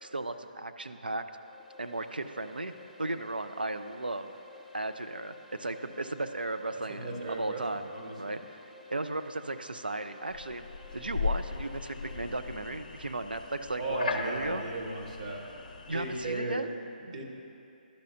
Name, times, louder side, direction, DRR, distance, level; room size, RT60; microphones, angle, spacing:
voice 1, 0.0-1.2 1.8-2.7 3.0-4.3 4.7-7.9 8.2-8.6 8.9-10.7 10.9-14.6 15.9-16.7, right 2 dB, 80° right, 8 dB, 0.4 m, -35 dB
sound 1, 1.1-12.8, left 3 dB, 5° right, 0.5 m, -53 dB
voice 2, 6.7-8.4 13.8-15.5 15.9-16.7 17.0-17.2, right 2 dB, 45° right, 0 dB, 1.1 m, -36 dB
sound 2, 10.3-16.4, left 5 dB, 55° left, 0.6 m, -38 dB
11.5 x 5.6 x 2.6 m, 2.7 s
figure-of-eight pair, 140°, 5 cm